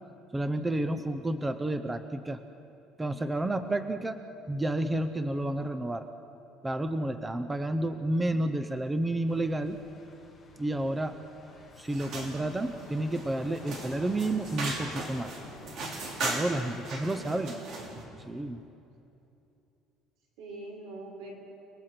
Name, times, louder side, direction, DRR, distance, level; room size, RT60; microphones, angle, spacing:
voice 1, 0.3-2.4 3.0-4.2 4.5-6.1 6.6-9.8 10.6-11.1 11.8-15.3 16.2-17.5 18.3-18.6, right 1 dB, 10° right, 9 dB, 0.6 m, -30 dB
sound 1, 9.3-16.7, left 2 dB, 5° left, 2.6 m, -51 dB
sound 2, 11.9-18.0, right 2 dB, 45° right, 3.1 m, -38 dB
voice 2, 17.1-17.9 20.4-21.3, right 2 dB, 85° right, -1 dB, 6.3 m, -44 dB
30.0 x 20.0 x 6.0 m, 2.8 s
cardioid pair, 170°, 0 cm